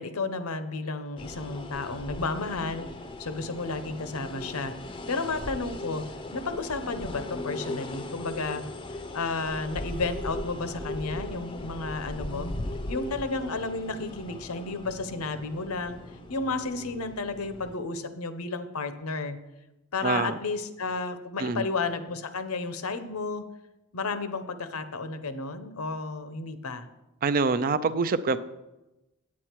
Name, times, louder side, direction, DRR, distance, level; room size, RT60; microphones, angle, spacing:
voice 1, 0.0-2.9 3.2-6.0 6.3-8.6 8.9-12.5 12.9-16.0 16.3-19.4 19.9-23.4 23.9-26.9, left 3 dB, 75° left, 10 dB, 0.8 m, -32 dB
sound 1, 1.2-17.8, left 1 dB, 20° left, 0.6 m, -38 dB
voice 2, 20.0-20.4 21.4-21.6 27.2-28.4, right 4 dB, 40° right, 13 dB, 0.4 m, -25 dB
8.7 x 8.5 x 4.6 m, 0.99 s
head